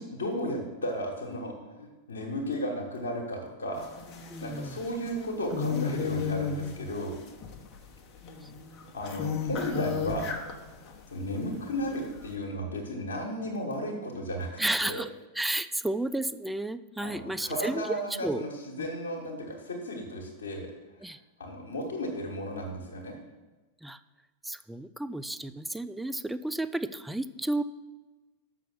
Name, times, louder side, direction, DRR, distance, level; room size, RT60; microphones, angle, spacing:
voice 1, 0.0-3.9 4.4-7.2 8.9-10.3 11.1-14.5 14.8-15.0 17.0-20.7 21.4-23.1, equal, 75° left, -4 dB, 1.4 m, -34 dB
sound 1, 3.7-11.0 11.3-12.3, left 6 dB, 40° left, 1.0 m, -34 dB
voice 2, 4.3-4.8 8.4-8.5 14.6-17.8 18.2-18.5 18.8-18.9 21.0-21.2 23.8-24.0 24.4-27.6, right 1 dB, 5° right, 12 dB, 0.4 m, -32 dB
6.8 x 6.1 x 6.1 m, 1.2 s
figure-of-eight pair, 90°, 0 cm